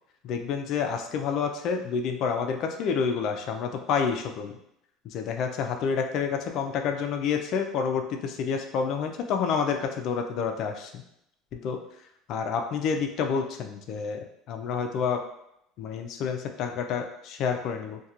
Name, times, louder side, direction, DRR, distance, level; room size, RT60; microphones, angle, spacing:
voice 1, 0.2-4.5 5.1-11.0 11.5-11.8 12.3-15.2 15.8-18.0, left 6 dB, 60° left, 4 dB, 0.3 m, -29 dB
2.4 x 2.2 x 2.8 m, 0.79 s
supercardioid pair, 100°, 0 cm